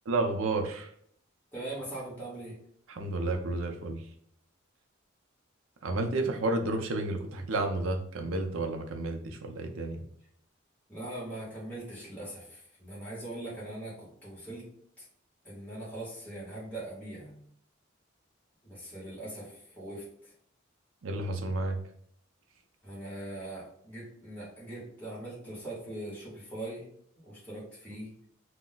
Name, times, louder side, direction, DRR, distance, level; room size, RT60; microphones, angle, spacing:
voice 1, 0.1-0.9 2.9-4.0 5.8-10.0 21.0-21.8, right 2 dB, 90° right, 4 dB, 0.5 m, -31 dB
voice 2, 1.5-2.6 10.9-14.7 15.0-15.1 15.4-17.5 18.6-20.3 22.8-26.9 27.2-28.1, right 1 dB, 10° left, -8 dB, 1.0 m, -41 dB
2.3 x 2.1 x 3.8 m, 0.66 s
head